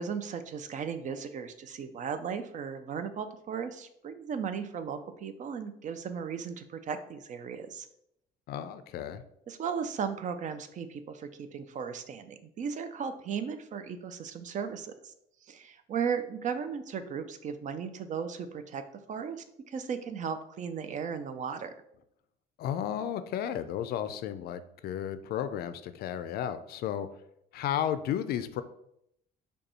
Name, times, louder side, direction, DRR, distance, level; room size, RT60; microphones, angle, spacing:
voice 1, 0.0-7.9 9.5-15.1 15.5-18.8 19.1-21.7, right 6 dB, 50° right, 10 dB, 0.5 m, -36 dB
voice 2, 8.5-9.2 22.6-27.1 27.5-28.6, left 10 dB, 65° left, 12 dB, 0.4 m, -33 dB
5.2 x 2.3 x 4.2 m, 0.75 s
cardioid pair, 110°, 17 cm